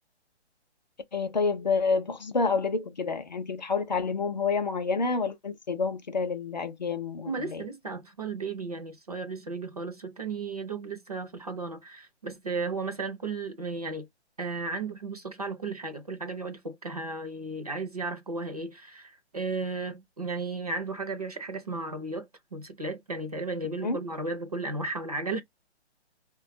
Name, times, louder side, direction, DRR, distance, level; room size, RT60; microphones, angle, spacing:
voice 1, 1.1-7.6 23.8-24.0, left 4 dB, 40° left, 0.4 m, -28 dB
voice 2, 7.2-14.1 14.4-25.4, right 3 dB, 35° right, 0.4 m, -34 dB
4.1 x 2.2 x 2.5 m
hypercardioid pair, 165°, 34 cm